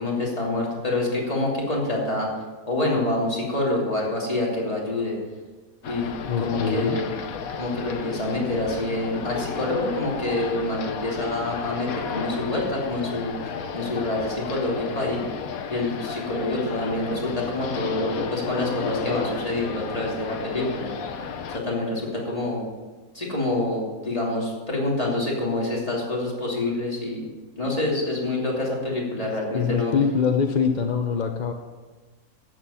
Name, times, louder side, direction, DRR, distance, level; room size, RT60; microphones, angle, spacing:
voice 1, 0.0-2.3 2.6-5.2 5.8-6.1 6.4-7.0 7.6-13.4 13.7-15.2 15.7-20.9 21.5-22.6 23.1-27.3 27.6-29.9, left 2 dB, 20° left, -4 dB, 3.0 m, -26 dB
sound 1, 5.8-21.6, left 6 dB, 65° left, 1.2 m, -33 dB
voice 2, 6.3-7.0 29.2-31.5, left 6 dB, 50° left, 4 dB, 0.5 m, -24 dB
12.5 x 7.9 x 5.7 m, 1.3 s
omnidirectional pair, 1.7 m